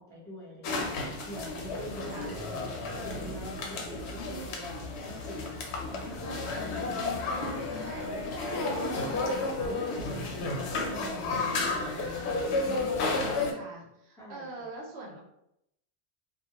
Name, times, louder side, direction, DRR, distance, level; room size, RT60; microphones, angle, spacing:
voice 1, 0.0-2.4 3.0-7.8 8.4-13.5 14.2-14.7, right 1 dB, 5° left, -6 dB, 0.6 m, -47 dB
sound 1, 0.6-13.5, left 3 dB, 80° left, 0.8 m, -32 dB
voice 2, 7.7-8.7 13.5-15.2, right 2 dB, 80° right, -1 dB, 0.9 m, -44 dB
2.2 x 2.1 x 2.8 m, 0.80 s
omnidirectional pair, 1.1 m